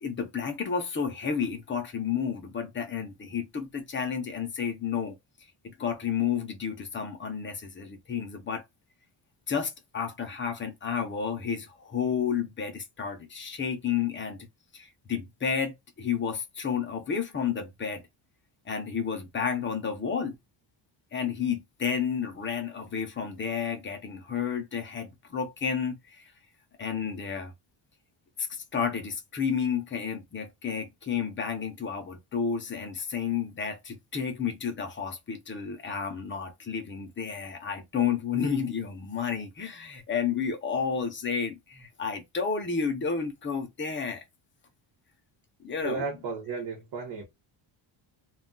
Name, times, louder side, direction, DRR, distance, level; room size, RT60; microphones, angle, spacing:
voice 1, 0.0-5.2 5.6-8.6 9.5-14.5 14.7-18.0 18.7-20.4 21.1-26.3 26.8-27.5 28.4-44.2 45.6-46.0, left 6 dB, 25° left, 0.5 m, -31 dB
voice 2, 45.8-47.2, right 4 dB, 55° right, 0.9 m, -34 dB
2.2 x 2.2 x 3.7 m
cardioid pair, 175°, 48 cm